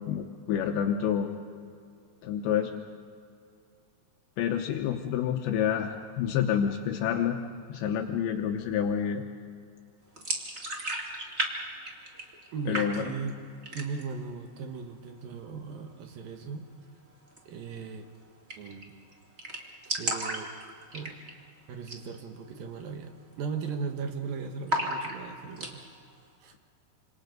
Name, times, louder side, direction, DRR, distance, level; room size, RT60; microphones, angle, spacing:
voice 1, 0.1-1.3 2.2-2.7 4.4-7.4 7.7-9.2 12.7-13.1, left 8 dB, 80° left, 4 dB, 3.2 m, -28 dB
sound 1, 10.2-11.5 11.8-12.5 12.7-13.3 13.6-14.2 14.5-14.6 14.9-15.6 17.3-17.4 17.7-17.8 18.0-18.1 18.5-18.8 19.1-19.2 19.4-21.4 21.8-22.1 22.4-22.5 23.1-23.3 23.6-24.2 24.7-25.7, right 1 dB, 25° right, 1.4 m, -33 dB
voice 2, 12.5-13.4 13.7-16.7 17.5-18.1 18.6-19.0 19.8-20.5 20.9-21.2 21.7-25.9 26.4-26.5, right 5 dB, 65° right, 5 dB, 2.7 m, -37 dB
28.0 x 27.0 x 5.3 m, 2.3 s
omnidirectional pair, 5.2 m